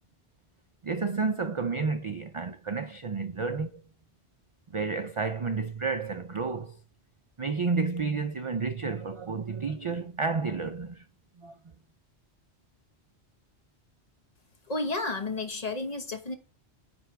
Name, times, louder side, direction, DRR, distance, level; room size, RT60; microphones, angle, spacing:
voice 1, 0.8-3.8 4.7-6.8 7.4-11.0 11.4-11.6, right 4 dB, 55° right, 0.3 m, -31 dB
voice 2, 14.7-16.3, left 2 dB, 35° left, 1.1 m, -32 dB
9.7 x 3.3 x 4.6 m
omnidirectional pair, 1.1 m